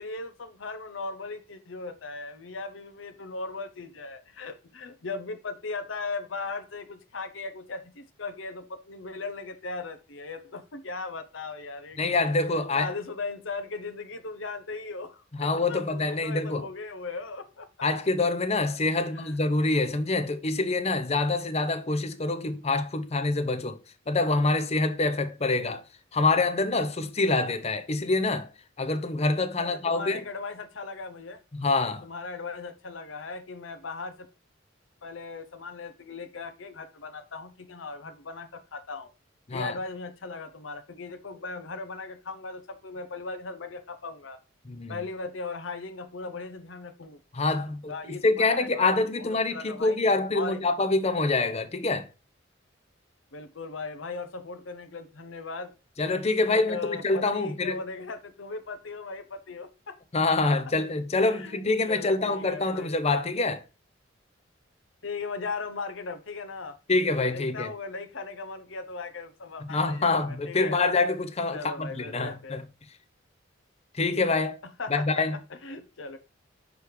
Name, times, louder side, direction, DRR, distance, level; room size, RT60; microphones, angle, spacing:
voice 1, 0.0-12.0 12.7-17.9 19.0-19.4 29.6-31.4 32.0-34.3 35.0-39.1 39.5-44.4 44.9-47.2 47.9-48.9 49.2-50.0 50.3-50.6 53.3-55.7 56.5-60.0 61.2-62.9 65.0-66.8 67.3-70.8 71.5-72.6 74.6-76.2, left 3 dB, 75° left, 0.8 m, -38 dB
voice 2, 12.0-12.9 15.4-16.7 17.8-23.8 24.1-25.8 26.1-28.5 28.8-30.2 31.5-32.0 39.5-39.7 44.7-45.0 47.3-52.1 56.0-57.8 60.1-63.6 66.9-67.7 69.7-72.6 73.9-74.6 74.9-75.4, left 3 dB, 30° left, 0.6 m, -26 dB
6.2 x 3.5 x 4.6 m
head